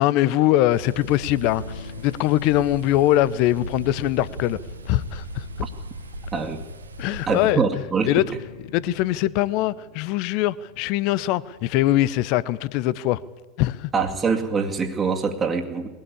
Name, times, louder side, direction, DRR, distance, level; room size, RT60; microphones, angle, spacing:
voice 1, 0.0-4.6 4.8-5.7 7.0-7.6 8.1-8.2 8.7-13.2 13.6-13.9, left 14 dB, 55° left, 0.7 m, -22 dB
sound 1, 0.7-7.5, right 2 dB, 85° right, 1.3 m, -38 dB
sound 2, 1.6-13.0, left 2 dB, 80° left, 2.7 m, -45 dB
voice 2, 7.3-8.2 13.9-15.9, right 5 dB, 25° right, 2.2 m, -24 dB
21.0 x 17.0 x 8.6 m
figure-of-eight pair, 85°, 0 cm